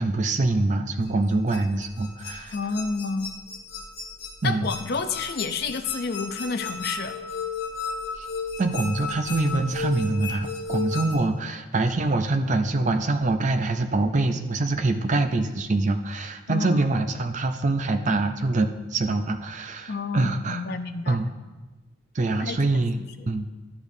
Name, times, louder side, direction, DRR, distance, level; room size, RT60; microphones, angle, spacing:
voice 1, 0.0-2.5 4.4-4.7 8.2-8.3 8.6-20.6 21.1-21.3 22.1-23.5, right 2 dB, 35° right, 6 dB, 0.4 m, -25 dB
sound 1, 1.0-11.1, left 4 dB, 70° left, 1.8 m, -34 dB
voice 2, 2.5-3.3 4.4-7.2 16.5-16.8 19.9-21.2 22.4-23.0, left 4 dB, 50° left, 9 dB, 0.5 m, -30 dB
11.5 x 6.9 x 2.7 m, 1.2 s
head